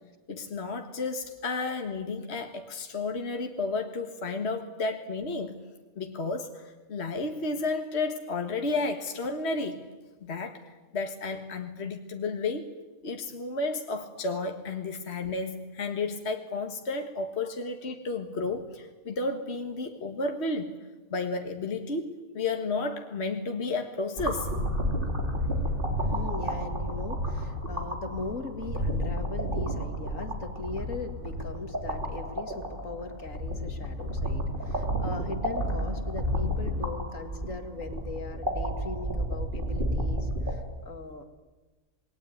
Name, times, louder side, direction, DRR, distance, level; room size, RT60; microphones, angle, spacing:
voice 1, 0.3-5.6 6.0-9.8 10.2-12.7 13.0-20.7 21.1-24.5, left 3 dB, 50° left, 5 dB, 1.8 m, -32 dB
sound 1, 24.2-40.5, equal, 35° right, 4.3 m, -31 dB
voice 2, 26.0-41.2, left 3 dB, 65° left, 7 dB, 2.6 m, -39 dB
28.0 x 21.0 x 9.4 m, 1.2 s
omnidirectional pair, 1.5 m